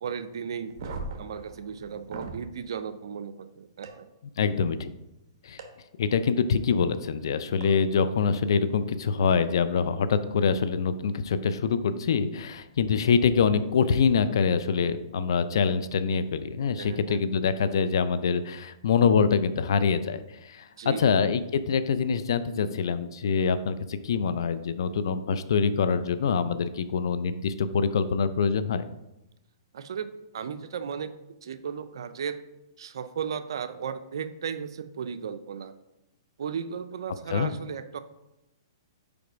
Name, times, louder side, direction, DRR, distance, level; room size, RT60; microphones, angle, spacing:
voice 1, 0.0-0.7 1.2-4.1 16.6-17.2 20.7-21.1 29.7-30.1 30.3-31.1 31.4-32.4 32.8-35.7 36.4-38.0, right 7 dB, 70° right, 11 dB, 0.5 m, -35 dB
sound 1, 0.7-2.4 3.8-3.9 5.6-5.7 7.6-7.7 9.1-9.3, right 3 dB, 55° right, 1.1 m, -39 dB
voice 2, 4.4-4.9 5.4-5.6 6.0-20.7 21.0-28.8 37.3-37.5, left 6 dB, 70° left, 13 dB, 0.5 m, -25 dB
5.3 x 4.9 x 4.6 m, 0.92 s
hypercardioid pair, 140°, 2 cm